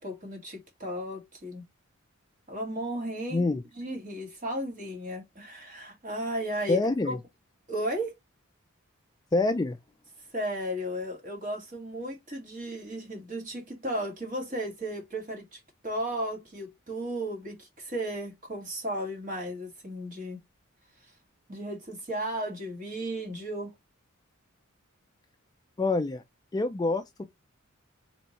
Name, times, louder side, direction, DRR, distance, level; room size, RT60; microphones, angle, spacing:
voice 1, 0.0-1.6 2.5-6.8 7.1-7.2 7.7-8.2 10.3-20.4 21.5-23.7, right 1 dB, 40° right, 2.0 m, -35 dB
voice 2, 3.3-3.6 6.7-7.2 9.3-9.8 25.8-26.2 26.5-27.2, left 2 dB, 20° left, 0.3 m, -26 dB
4.1 x 3.4 x 3.1 m
head